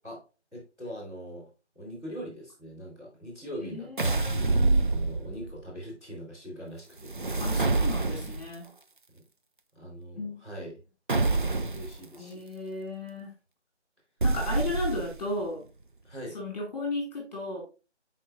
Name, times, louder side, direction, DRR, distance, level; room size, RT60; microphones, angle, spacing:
voice 1, 0.5-1.5 1.7-4.3 4.9-7.4 9.1-9.2 9.7-10.7 11.7-12.4 16.0-16.4, equal, 5° right, -13 dB, 2.6 m, -42 dB
voice 2, 3.6-4.8 7.4-8.7 10.2-10.5 12.2-13.3 14.2-15.6 16.3-17.6, left 2 dB, 35° left, -1 dB, 2.3 m, -35 dB
sound 1, 4.0-5.6 7.0-8.5 11.1-11.9 14.2-15.3, right 3 dB, 45° right, 0.4 m, -26 dB
9.0 x 4.4 x 2.5 m, 0.32 s
figure-of-eight pair, 165°, 35 cm